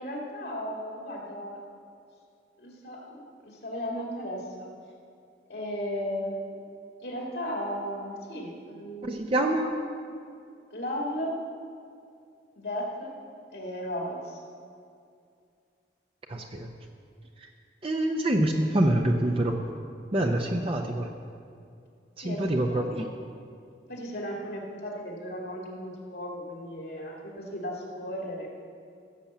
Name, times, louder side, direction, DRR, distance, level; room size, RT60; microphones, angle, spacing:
voice 1, 0.0-1.6 2.6-3.2 3.4-4.7 5.5-6.5 7.0-9.2 10.7-11.4 12.6-13.1 13.5-14.4 22.2-23.2 23.9-28.5, equal, 75° left, -2 dB, 2.3 m, -35 dB
voice 2, 9.1-9.7 16.3-16.7 17.8-19.6 20.1-21.1 22.2-23.1, right 1 dB, 30° right, 2 dB, 0.7 m, -26 dB
15.5 x 7.2 x 7.2 m, 2.4 s
head